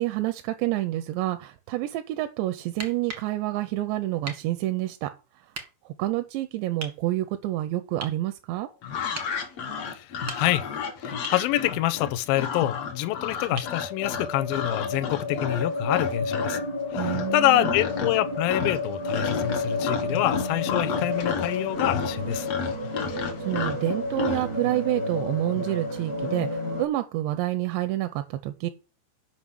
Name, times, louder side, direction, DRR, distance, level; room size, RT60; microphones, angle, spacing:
voice 1, 0.0-5.5 5.9-8.7 17.0-17.7 23.1-28.7, right 15 dB, 90° right, 2.9 m, -28 dB
sound 1, 2.8-3.3 4.2-4.5 5.5-5.7 6.8-7.0 8.0-8.2 9.1-9.4 10.1-10.7 11.2-11.5 13.6-13.8 15.6-15.7, right 3 dB, 60° right, 1.1 m, -38 dB
sound 2, 8.8-16.6 16.9-17.4 17.6-18.2 18.5-24.5, left 6 dB, 60° left, 1.7 m, -32 dB
voice 2, 9.9-10.6 11.0-16.6 17.0-22.5, left 14 dB, 85° left, 2.1 m, -26 dB
sound 3, 10.2-10.3 11.1-11.2 11.7-11.8 12.4-26.9, left 2 dB, 40° left, 1.3 m, -31 dB
7.6 x 5.6 x 7.6 m
omnidirectional pair, 4.9 m